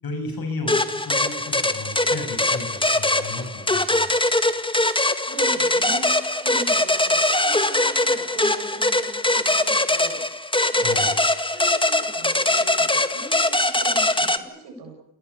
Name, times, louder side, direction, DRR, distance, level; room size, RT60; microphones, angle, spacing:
voice 1, 0.0-4.2 10.8-11.1, left 3 dB, 65° left, 7 dB, 7.0 m, -33 dB
sound 1, 0.7-14.4, left 2 dB, 15° left, 2.0 m, -22 dB
voice 2, 5.2-6.1 6.4-10.2 10.7-14.9, right 2 dB, 85° right, 3 dB, 7.6 m, -40 dB
27.5 x 18.5 x 8.5 m, 0.77 s
supercardioid pair, 45°, 39 cm